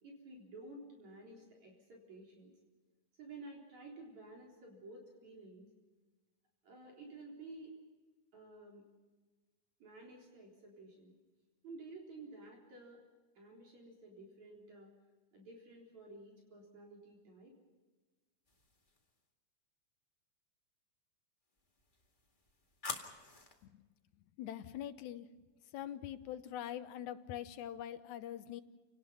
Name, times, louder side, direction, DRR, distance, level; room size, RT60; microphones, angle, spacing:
voice 1, 0.0-2.5 3.2-5.7 6.6-7.7 8.3-8.9 9.8-11.1 11.6-13.0 13.4-14.9 15.3-17.6, right 2 dB, 65° right, -1 dB, 5.2 m, -53 dB
sound 1, 18.5-19.2 21.6-23.7, left 3 dB, 20° left, 1.7 m, -48 dB
voice 2, 24.4-25.3 25.7-28.6, left 11 dB, 75° left, 11 dB, 2.3 m, -43 dB
29.5 x 18.5 x 5.7 m, 1.3 s
omnidirectional pair, 3.5 m